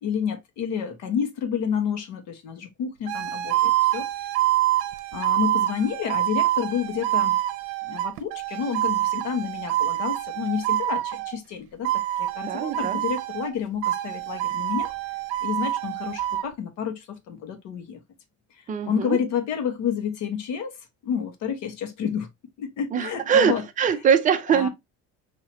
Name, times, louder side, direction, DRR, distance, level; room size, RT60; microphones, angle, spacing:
voice 1, 0.0-4.0 5.1-7.4 7.9-11.9 12.2-14.9 15.4-18.0 18.6-20.7 21.0-22.3 22.6-23.6 24.5-24.7, left 7 dB, 60° left, 1.3 m, -29 dB
sound 1, 3.1-11.4 11.8-13.5 13.8-16.5, right 14 dB, 80° right, 0.7 m, -26 dB
voice 2, 12.5-13.0 18.7-19.2 22.9-24.7, right 7 dB, 25° right, 0.5 m, -22 dB
6.0 x 2.9 x 3.0 m
cardioid pair, 170°, 32 cm